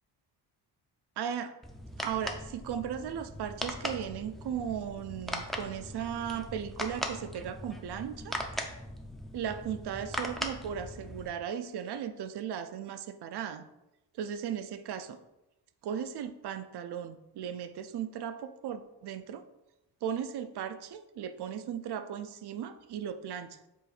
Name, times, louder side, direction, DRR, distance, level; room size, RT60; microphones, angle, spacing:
voice 1, 1.2-1.6 2.0-8.4 9.3-13.6 14.1-15.2 15.8-19.4 20.0-23.7, right 8 dB, 70° right, 11 dB, 0.6 m, -37 dB
sound 1, 1.6-11.3, equal, ahead, 0.4 m, -39 dB
7.7 x 2.6 x 4.9 m, 0.94 s
wide cardioid pair, 140°, 41 cm